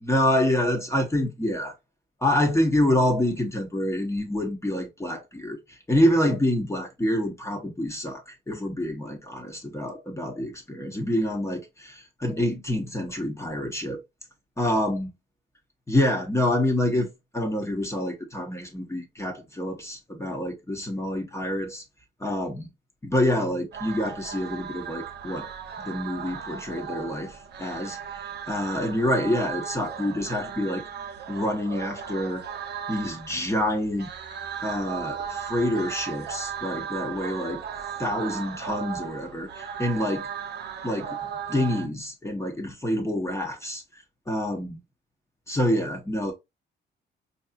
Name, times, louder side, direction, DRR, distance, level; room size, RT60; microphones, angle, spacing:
voice 1, 0.0-1.7 2.2-14.0 14.6-15.1 15.9-21.8 22.2-22.7 23.0-25.5 25.8-28.0 28.5-30.8 31.3-32.4 32.9-34.1 34.6-37.6 38.0-40.3 40.8-41.2 41.5-44.8 45.5-46.3, left 1 dB, 15° left, 1.0 m, -27 dB
Buddhist Nun Chants, 23.7-41.9, right 7 dB, 60° right, 0.7 m, -36 dB
4.6 x 2.8 x 2.4 m
cardioid pair, 90°, 20 cm